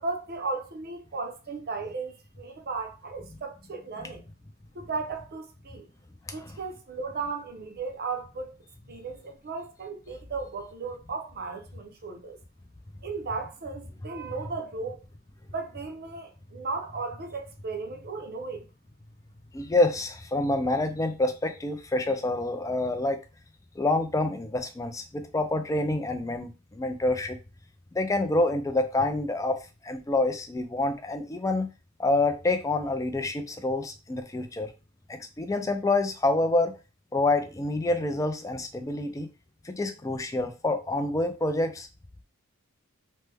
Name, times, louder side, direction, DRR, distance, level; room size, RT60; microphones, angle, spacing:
voice 1, 0.0-4.2 4.7-5.9 6.3-8.6 8.9-12.4 13.0-15.0 15.5-18.7, right 4 dB, 45° right, 0.5 m, -35 dB
voice 2, 6.3-6.6 19.5-23.2 23.8-27.4 27.9-31.7 32.0-34.7 35.1-36.8 37.1-39.3 39.6-41.9, left 2 dB, 15° left, 0.3 m, -27 dB
3.1 x 2.1 x 3.3 m
head